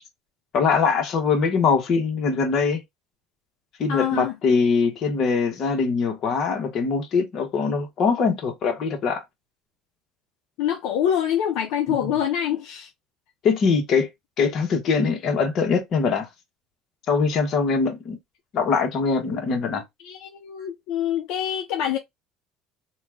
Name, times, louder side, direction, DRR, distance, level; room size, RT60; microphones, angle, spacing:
voice 1, 0.5-2.8 3.8-9.2 11.9-12.2 13.4-14.1 14.4-16.3 17.1-18.2 18.5-19.8, left 5 dB, 55° left, 1.2 m, -22 dB
voice 2, 3.9-4.3 10.6-12.9 20.0-22.0, left 10 dB, 75° left, 0.6 m, -25 dB
3.0 x 2.4 x 3.4 m
supercardioid pair, 105°, 0 cm